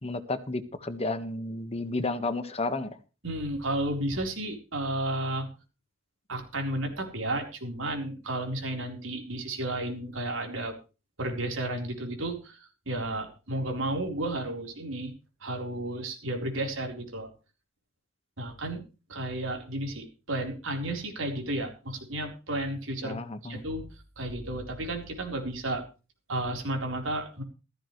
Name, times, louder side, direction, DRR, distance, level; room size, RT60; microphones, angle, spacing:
voice 1, 0.0-2.9 23.0-23.6, left 2 dB, 30° left, 10 dB, 1.6 m, -32 dB
voice 2, 3.2-5.5 6.3-10.8 11.2-15.1 15.4-17.3 18.4-18.8 19.1-23.8 24.2-25.8 26.3-27.4, right 1 dB, 80° right, 3 dB, 4.3 m, -32 dB
15.0 x 14.5 x 3.3 m, 0.32 s
head